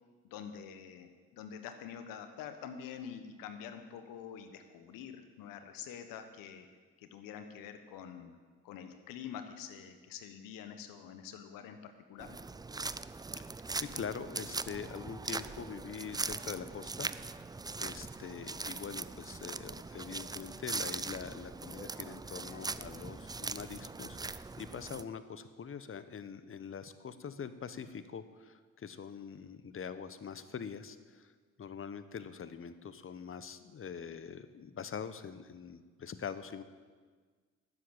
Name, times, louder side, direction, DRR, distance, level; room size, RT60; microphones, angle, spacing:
voice 1, 0.2-6.7 7.0-8.3 8.6-12.4, left 8 dB, 85° left, 8 dB, 1.2 m, -46 dB
sound 1, 12.2-25.0, right 3 dB, 10° right, 0.4 m, -41 dB
voice 2, 13.4-17.1 17.4-17.5 17.8-31.3 31.6-36.6, left 6 dB, 40° left, 12 dB, 1.0 m, -44 dB
12.0 x 7.8 x 8.8 m, 1.5 s
supercardioid pair, 60°, 33 cm